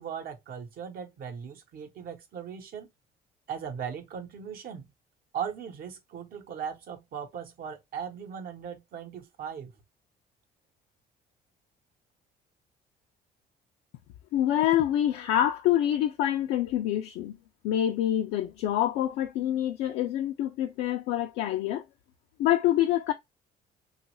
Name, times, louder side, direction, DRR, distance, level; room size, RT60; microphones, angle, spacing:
voice 1, 0.0-2.9 3.5-4.9 5.3-9.7, right 7 dB, 60° right, 0.9 m, -38 dB
voice 2, 14.3-17.4 17.6-21.8 22.4-23.1, left 12 dB, 85° left, 0.4 m, -26 dB
3.0 x 2.4 x 3.0 m
cardioid pair, 110°, 17 cm